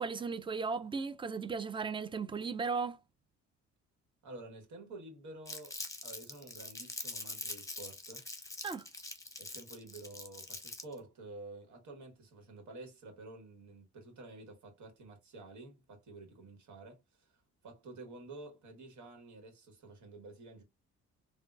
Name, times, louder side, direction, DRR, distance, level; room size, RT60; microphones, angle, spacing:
voice 1, 0.0-3.0 8.6-8.9, right 5 dB, 15° right, 0.4 m, -36 dB
voice 2, 4.2-8.3 9.4-20.6, right 2 dB, 70° right, 1.4 m, -50 dB
Crumpling crinkling, 5.5-11.0, left 2 dB, 10° left, 0.9 m, -44 dB
3.5 x 2.3 x 2.4 m
cardioid pair, 90°, 30 cm